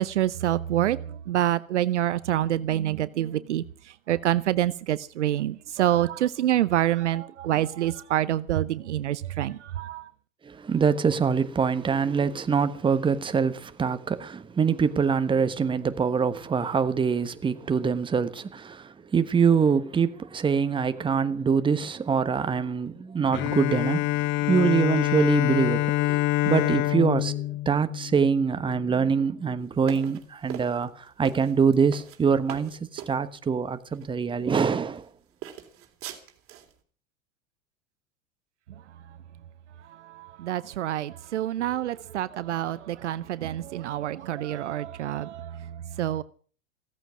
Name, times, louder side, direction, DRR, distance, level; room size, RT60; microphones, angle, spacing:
voice 1, 0.0-3.6 4.1-10.1 40.0-46.2, right 13 dB, 60° right, 0.8 m, -27 dB
voice 2, 10.4-30.9 31.2-35.1, right 6 dB, 10° right, 1.2 m, -24 dB
Bowed string instrument, 23.3-28.8, left 15 dB, 30° left, 0.7 m, -26 dB
sound 1, 29.8-33.1 33.9-34.1 34.6-35.1 35.4-36.7, right 10 dB, 30° right, 3.3 m, -41 dB
16.5 x 14.0 x 6.1 m
figure-of-eight pair, 90°, 41 cm